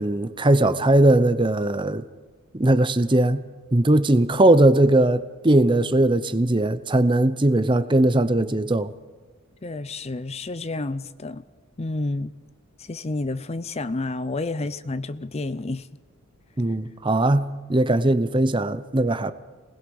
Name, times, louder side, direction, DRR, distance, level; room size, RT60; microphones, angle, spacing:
voice 1, 0.0-2.0 2.5-3.4 3.7-8.9 16.6-19.3, right 1 dB, 25° right, 0.8 m, -19 dB
voice 2, 9.6-11.4 11.8-12.3 12.8-15.9, left 2 dB, 30° left, 0.5 m, -30 dB
27.0 x 20.0 x 5.5 m
head